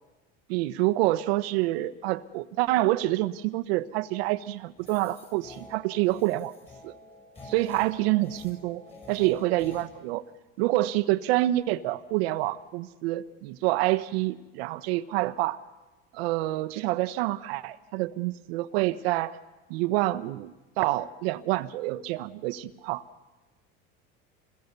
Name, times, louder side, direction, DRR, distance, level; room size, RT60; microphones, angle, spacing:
voice 1, 0.5-6.5 6.8-6.9 7.5-8.8 9.1-10.2 10.6-15.6 16.1-19.4 19.7-23.0, right 17 dB, 85° right, 12 dB, 1.2 m, -27 dB
sound 1, 4.8-9.9, left 2 dB, 20° left, 6.4 m, -48 dB
28.0 x 21.5 x 6.9 m, 1.2 s
cardioid pair, 140°, 30 cm